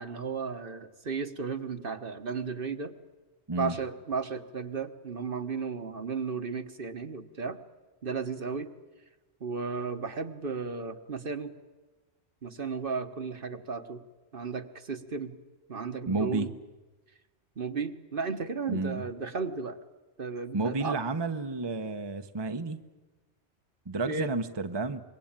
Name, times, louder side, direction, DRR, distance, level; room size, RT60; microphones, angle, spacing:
voice 1, 0.0-2.9 3.5-7.6 8.0-8.7 9.4-11.5 12.4-14.0 14.3-15.3 15.7-16.5 17.6-19.8 20.2-21.0 24.1-24.3, right 5 dB, 50° right, 9 dB, 1.4 m, -34 dB
voice 2, 16.1-16.5 18.7-19.0 20.5-22.8 23.9-25.0, right 3 dB, 25° right, 8 dB, 0.9 m, -31 dB
25.5 x 22.0 x 8.9 m, 1.2 s
omnidirectional pair, 1.2 m